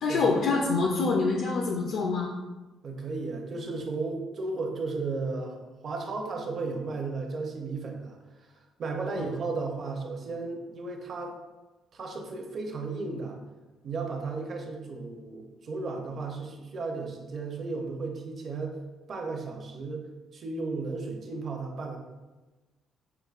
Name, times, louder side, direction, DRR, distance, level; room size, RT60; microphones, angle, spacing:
voice 1, 0.0-2.3 9.2-9.3, left 3 dB, 60° left, 0 dB, 0.4 m, -26 dB
voice 2, 2.8-8.5 8.8-11.4 11.9-13.4 13.8-18.8 19.1-20.1 20.3-22.0, right 3 dB, 35° right, 2 dB, 0.6 m, -34 dB
5.9 x 2.6 x 2.4 m, 1.2 s
cardioid pair, 165°, 0 cm